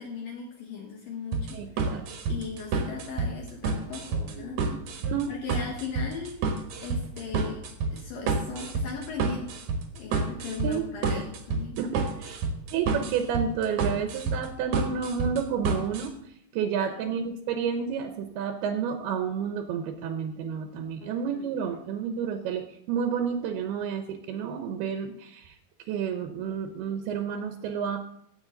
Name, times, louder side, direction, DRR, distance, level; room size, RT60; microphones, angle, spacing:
voice 1, 0.0-2.0 2.3-4.6 5.3-7.6 7.9-9.5 9.9-11.8 16.8-17.2 21.0-21.8, left 5 dB, 65° left, 0 dB, 2.7 m, -38 dB
sound 1, 1.3-16.1, right 4 dB, 60° right, 2.2 m, -29 dB
voice 2, 1.5-2.0 4.4-5.3 10.6-11.3 11.8-12.4 12.7-16.1 16.5-25.6 25.9-28.0, right 7 dB, 80° right, 7 dB, 2.7 m, -31 dB
16.5 x 7.0 x 3.8 m, 0.72 s
omnidirectional pair, 4.6 m